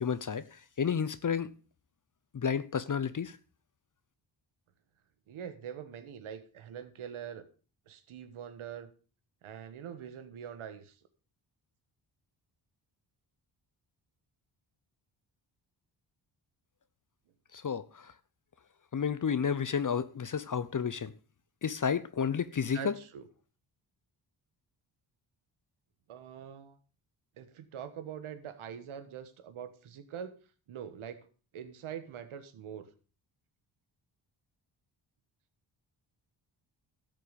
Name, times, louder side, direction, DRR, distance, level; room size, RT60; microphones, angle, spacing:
voice 1, 0.0-1.5 2.3-3.4 17.5-18.1 18.9-21.1 21.6-22.9, left 7 dB, 40° left, 0.8 m, -31 dB
voice 2, 5.3-7.5 7.9-8.9 9.4-11.0 22.7-23.3 26.1-26.8 27.4-30.3 30.7-31.3 31.5-32.9, right 8 dB, 85° right, 1.5 m, -44 dB
13.0 x 7.6 x 5.2 m
cardioid pair, 60°, 48 cm